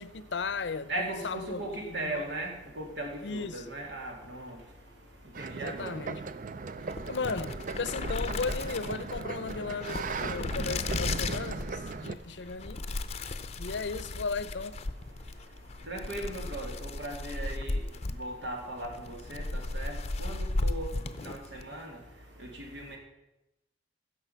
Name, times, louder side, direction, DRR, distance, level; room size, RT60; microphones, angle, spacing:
voice 1, 0.0-2.3 3.2-3.6 5.6-6.3 7.1-12.8 13.6-14.8, left 4 dB, 80° left, 0.6 m, -36 dB
voice 2, 0.9-4.6 5.4-5.9 15.9-17.8 18.2-20.9 21.2-21.9 22.7-23.0, right 1 dB, 85° right, 2.7 m, -38 dB
sound 1, 5.3-12.1, right 4 dB, 50° right, 0.5 m, -38 dB
sound 2, 6.8-21.7, left 2 dB, 35° left, 0.6 m, -36 dB
16.0 x 6.6 x 5.7 m
head